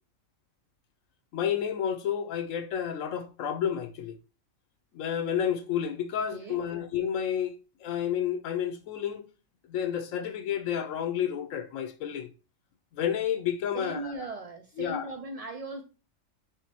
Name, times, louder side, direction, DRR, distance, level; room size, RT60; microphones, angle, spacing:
voice 1, 1.3-4.1 4.9-9.3 9.7-12.3 12.9-14.3 14.8-15.1, left 9 dB, 75° left, 0.9 m, -30 dB
voice 2, 6.3-6.6 13.7-15.8, right 2 dB, 80° right, 0.3 m, -38 dB
5.0 x 3.5 x 2.8 m
omnidirectional pair, 1.4 m